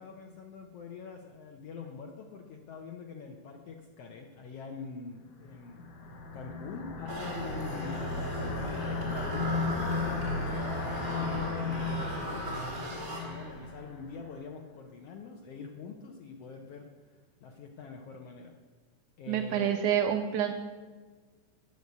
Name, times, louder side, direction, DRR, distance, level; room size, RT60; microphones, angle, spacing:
voice 1, 0.0-5.9 6.3-16.9 17.4-18.5 19.2-19.9, left 5 dB, 85° left, 2 dB, 1.3 m, -45 dB
sound 1, 5.5-14.2, left 3 dB, 60° left, 1.9 m, -35 dB
sound 2, 7.1-13.7, equal, 5° right, 2.2 m, -38 dB
voice 2, 19.3-20.5, right 9 dB, 80° right, 5 dB, 1.9 m, -28 dB
10.0 x 8.0 x 6.8 m, 1.4 s
omnidirectional pair, 3.9 m